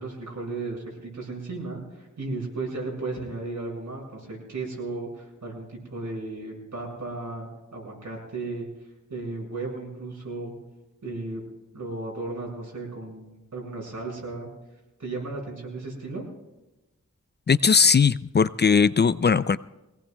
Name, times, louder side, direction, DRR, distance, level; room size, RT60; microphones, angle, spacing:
voice 1, 0.0-8.7 9.1-10.5 11.0-11.4 11.7-14.5 15.0-16.2, right 3 dB, 90° right, -2 dB, 6.2 m, -35 dB
voice 2, 17.5-19.6, left 5 dB, 35° left, 15 dB, 0.4 m, -19 dB
24.5 x 18.0 x 2.3 m, 1.0 s
wide cardioid pair, 80°, 29 cm